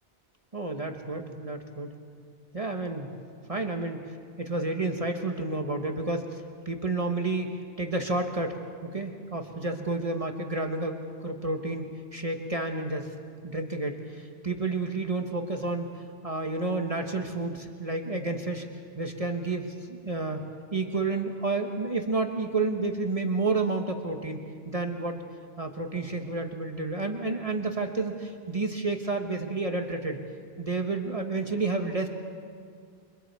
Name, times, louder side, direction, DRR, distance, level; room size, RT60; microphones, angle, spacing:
voice 1, 0.5-1.9 2.5-3.1 3.5-4.0 4.4-7.5 7.8-13.1 13.4-15.9 16.2-18.7 18.9-20.4 20.7-25.2 25.6-30.2 30.6-32.1, right 3 dB, 35° right, 4 dB, 1.3 m, -30 dB
29.0 x 23.5 x 4.6 m, 2.2 s
omnidirectional pair, 1.1 m